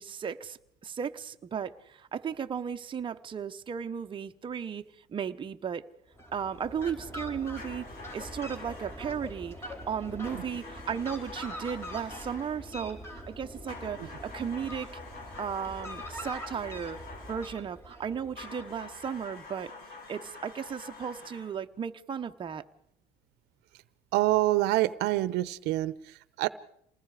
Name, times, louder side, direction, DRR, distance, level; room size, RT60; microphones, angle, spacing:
voice 1, 0.0-5.9 6.3-7.9 8.1-14.9 15.4-17.0 17.3-19.7 20.1-22.6, right 7 dB, 30° right, 1.0 m, -35 dB
Fowl, 6.1-19.1, equal, 15° left, 4.3 m, -44 dB
sound 1, 7.6-9.1 10.2-12.7 13.7-17.6 18.4-21.6, left 4 dB, 55° left, 6.2 m, -46 dB
voice 2, 24.1-26.5, right 17 dB, 75° right, 0.9 m, -26 dB
28.0 x 20.0 x 4.9 m
cardioid pair, 115°, 17 cm